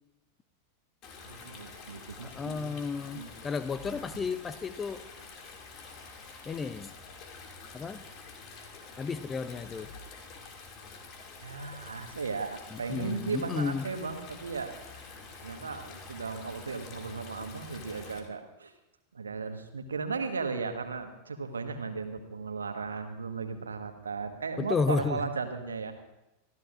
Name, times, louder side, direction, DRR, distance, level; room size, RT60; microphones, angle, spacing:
Stream, 1.0-18.2, left 4 dB, 40° left, 2.4 m, -47 dB
voice 1, 1.2-2.8 3.1-3.3 11.4-15.0 15.4-18.7 19.1-25.9, right 4 dB, 75° right, 7 dB, 1.4 m, -36 dB
voice 2, 2.2-5.0 6.5-6.9 7.7-8.0 9.0-9.9 12.7-13.9 24.6-25.2, left 5 dB, 20° left, 15 dB, 0.6 m, -33 dB
25.5 x 14.0 x 2.6 m, 0.94 s
figure-of-eight pair, 90°, 0 cm